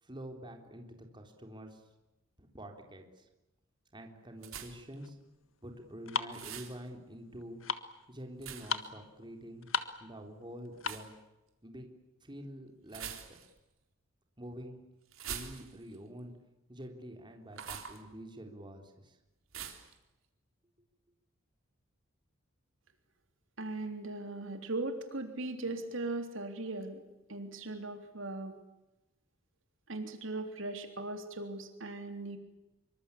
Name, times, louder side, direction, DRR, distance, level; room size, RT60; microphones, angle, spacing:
voice 1, 0.0-1.8 2.4-3.3 3.9-5.2 5.6-7.6 8.1-9.7 10.0-11.1 11.6-11.9 12.2-13.1 14.4-14.8 15.3-16.3 16.7-19.2, equal, 25° right, 3 dB, 3.8 m, -47 dB
sound 1, 4.4-4.9 6.3-6.8 8.4-8.9 10.8-11.1 12.9-13.6 15.1-16.0 17.5-18.0 19.5-19.9, right 8 dB, 85° right, 4.0 m, -43 dB
sound 2, 5.0-11.2, left 5 dB, 80° left, 1.7 m, -39 dB
voice 2, 23.6-27.0 27.3-28.6 29.9-32.4, right 2 dB, 70° right, 6 dB, 3.4 m, -38 dB
26.0 x 24.5 x 8.6 m, 0.98 s
head